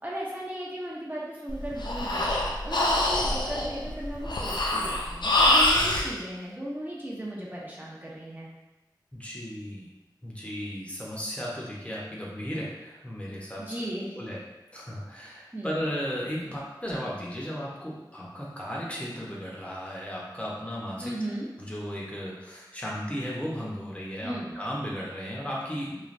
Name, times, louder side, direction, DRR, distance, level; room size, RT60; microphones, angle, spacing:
voice 1, 0.0-2.3 2.6-8.5 13.6-14.2 15.5-15.8 21.0-21.5 24.2-24.5, right 1 dB, 25° right, -6 dB, 0.6 m, -36 dB
Breathing, 1.5-6.1, left 1 dB, 70° left, 0.4 m, -25 dB
voice 2, 9.1-9.9 10.2-13.6 14.2-14.4 14.7-21.1 21.6-26.0, equal, 15° left, -5 dB, 0.7 m, -35 dB
3.1 x 2.2 x 2.5 m, 1.1 s
wide cardioid pair, 40°, 8 cm